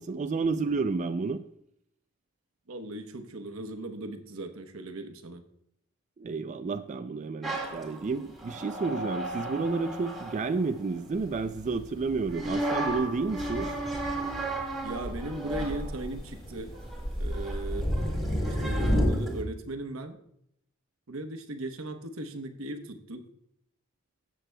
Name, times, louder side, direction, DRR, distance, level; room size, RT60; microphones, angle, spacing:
voice 1, 0.0-1.4 6.2-13.7, right 4 dB, 35° right, 8 dB, 0.3 m, -31 dB
voice 2, 2.7-5.4 14.8-16.7 17.2-17.9 18.5-20.2 21.1-23.3, right 2 dB, 85° right, 7 dB, 1.0 m, -38 dB
sound 1, 7.4-11.4 12.3-19.4, right 2 dB, ahead, 1.9 m, -36 dB
Thunder, 11.1-19.1, equal, 25° left, 3.4 m, -32 dB
13.0 x 7.6 x 2.2 m, 0.74 s
head